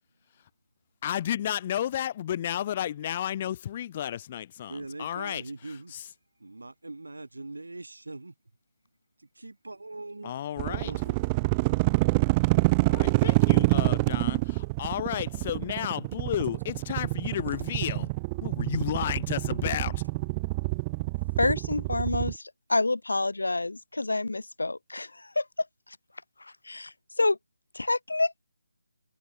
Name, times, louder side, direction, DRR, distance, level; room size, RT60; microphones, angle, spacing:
voice 1, 1.0-5.4 5.9-6.0 10.2-10.9 12.9-18.1 18.4-20.0, left 11 dB, 30° left, 0.9 m, -32 dB
voice 2, 4.7-6.1 6.4-8.3 9.2-10.3 10.6-11.2 14.0-14.2 17.5-17.7, right 2 dB, 85° right, 4.6 m, -42 dB
sound 1, 10.6-22.3, right 25 dB, 20° right, 0.5 m, -26 dB
voice 3, 21.4-25.5 26.4-27.4 27.7-28.4, left 2 dB, 85° left, 0.6 m, -28 dB
figure-of-eight pair, 160°, 0 cm